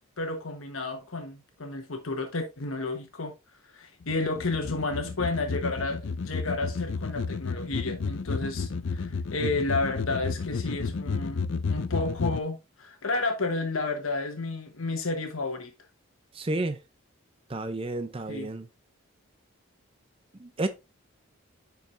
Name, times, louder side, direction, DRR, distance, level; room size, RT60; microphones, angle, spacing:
voice 1, 0.2-3.3 3.7-15.7 18.3-18.5, left 3 dB, 75° left, 1.2 m, -31 dB
sound 1, 4.0-12.4, left 4 dB, 55° left, 0.4 m, -32 dB
voice 2, 16.3-16.8 17.5-18.7 20.4-20.7, right 2 dB, 25° right, 0.5 m, -31 dB
10.0 x 4.7 x 2.6 m
head